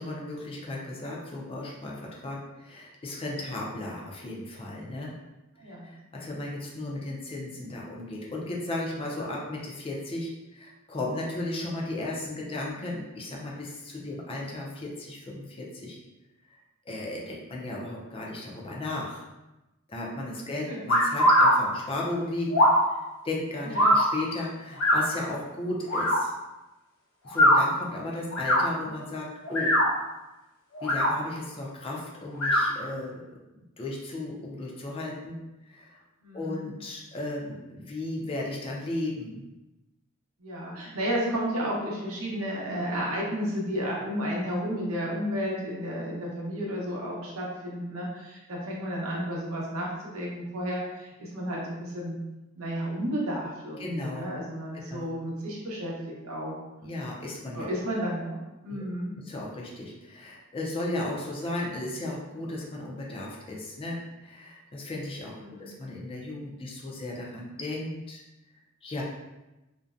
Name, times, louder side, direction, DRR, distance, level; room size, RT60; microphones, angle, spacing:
voice 1, 0.0-5.1 5.6-16.0 16.9-19.2 19.9-22.6 22.9-23.0 23.2-26.3 27.2-29.7 30.8-33.2 33.8-35.4 35.7-35.9 36.3-39.4 53.8-54.3 54.9-55.0 56.8-57.6 58.7-58.8 59.3-65.3 65.6-68.2 68.8-69.0, left 2 dB, 25° left, -2 dB, 0.4 m, -35 dB
voice 2, 20.4-20.8 23.6-23.9 28.0-28.3 36.2-36.7 40.4-52.2 52.6-56.6 57.5-59.1 65.4-65.7, equal, 75° right, -3 dB, 0.7 m, -32 dB
sound 1, 20.9-21.5 22.5-22.8 23.7-24.0 24.8-25.0 25.9-26.2 27.3-27.6 28.3-28.6 29.4-29.9 30.7-31.1 32.4-32.6, equal, 70° left, 0.7 m, -20 dB
2.5 x 2.1 x 2.3 m, 1.0 s
head